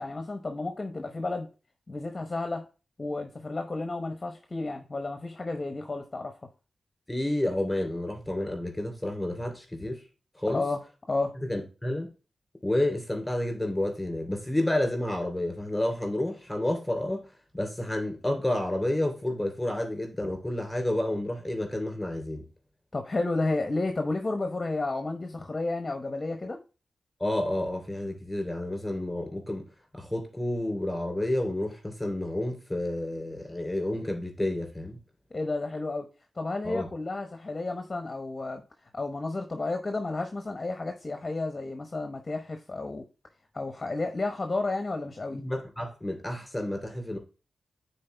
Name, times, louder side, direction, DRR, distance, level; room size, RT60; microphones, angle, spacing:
voice 1, 0.0-1.5 1.9-2.7 3.0-6.4 10.5-10.8 11.1-11.4 22.9-26.6 35.3-36.1 36.4-43.0 43.5-45.4, left 2 dB, 30° left, 0.8 m, -32 dB
voice 2, 7.1-10.0 10.3-10.6 11.4-12.1 12.6-17.3 17.5-22.4 27.2-29.7 29.9-35.0 36.6-36.9 45.3-47.2, left 1 dB, 10° left, 3.2 m, -30 dB
9.3 x 4.3 x 3.3 m
wide cardioid pair, 110°, 0 cm